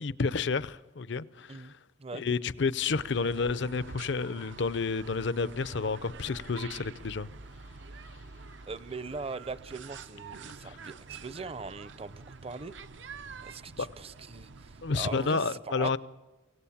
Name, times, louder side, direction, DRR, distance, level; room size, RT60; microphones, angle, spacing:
voice 1, 0.0-1.6 2.1-7.3 13.8-13.9 14.8-16.0, left 4 dB, 70° left, 0.6 m, -30 dB
sound 1, 2.9-15.2, right 4 dB, 70° right, 0.7 m, -47 dB
voice 2, 8.7-12.7 13.4-16.0, right 4 dB, 30° right, 0.7 m, -40 dB
24.5 x 17.5 x 7.2 m
head